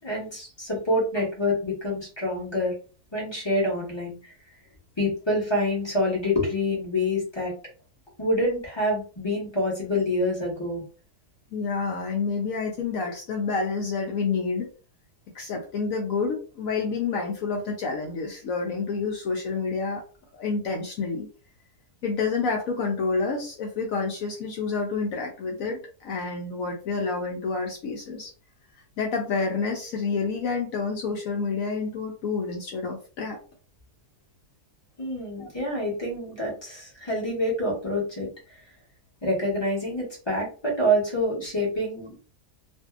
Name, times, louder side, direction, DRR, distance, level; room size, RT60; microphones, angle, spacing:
voice 1, 0.0-2.7 3.1-4.3 5.0-7.5 8.2-10.8 35.0-38.3 39.2-42.2, left 1 dB, 20° left, -4 dB, 0.9 m, -27 dB
voice 2, 11.5-14.7 15.3-20.0 20.3-21.3 22.0-28.3 29.0-33.4 35.4-35.5, left 4 dB, 65° left, 1 dB, 0.9 m, -28 dB
2.6 x 2.6 x 2.3 m, 0.37 s
omnidirectional pair, 1.7 m